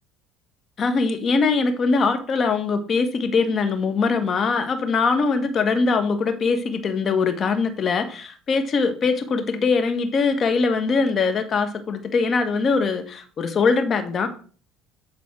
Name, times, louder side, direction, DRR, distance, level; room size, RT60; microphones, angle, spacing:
voice 1, 0.8-14.3, left 4 dB, 40° left, 7 dB, 1.6 m, -22 dB
10.5 x 4.1 x 6.1 m, 0.41 s
cardioid pair, 115°, 0 cm